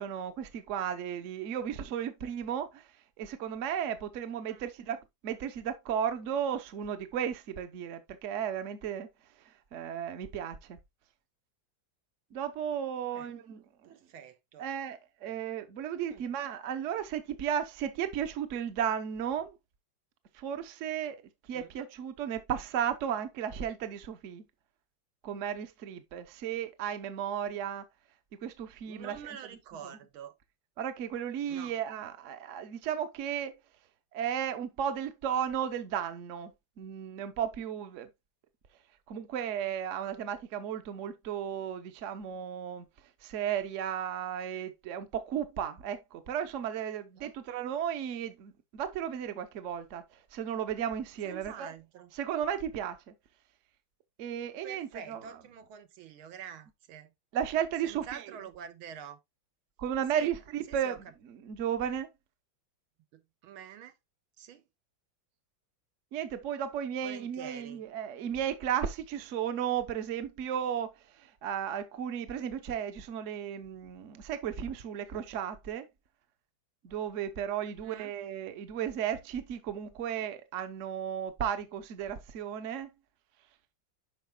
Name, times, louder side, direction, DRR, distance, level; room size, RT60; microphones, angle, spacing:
voice 1, 0.0-2.8 3.2-5.0 5.2-9.1 9.7-10.8 12.3-13.9 14.6-19.6 20.3-21.2 21.5-24.4 25.2-27.8 28.4-29.2 29.8-30.0 30.8-33.5 34.1-38.1 39.1-42.9 43.2-50.0 50.3-51.7 52.1-53.1 54.2-55.2 57.3-58.2 59.8-61.0 61.3-62.1 66.1-70.9 71.2-75.9 76.8-82.9, right 9 dB, 55° right, 0.9 m, -34 dB
voice 2, 13.8-14.6 16.1-16.2 21.5-21.7 28.9-30.3 31.5-31.7 47.2-47.3 51.2-52.1 54.6-57.1 57.8-59.2 60.1-60.3 60.7-61.0 63.1-63.9 64.4-64.6 67.0-67.8 77.8-78.1, right 8 dB, 90° right, 1.8 m, -46 dB
9.2 x 5.8 x 2.2 m
omnidirectional pair, 2.2 m